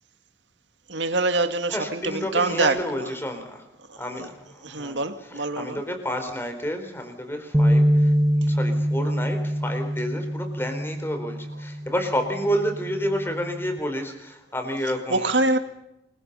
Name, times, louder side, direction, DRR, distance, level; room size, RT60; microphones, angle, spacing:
voice 1, 0.9-3.1 3.9-4.3 4.6-5.8 15.1-15.6, right 2 dB, 80° right, 2.0 m, -25 dB
voice 2, 1.7-3.7 4.0-5.0 5.3-8.1 8.4-15.5, equal, 15° left, 4.3 m, -30 dB
sound 1, 7.5-13.8, equal, 10° right, 0.9 m, -24 dB
28.0 x 22.5 x 5.6 m
head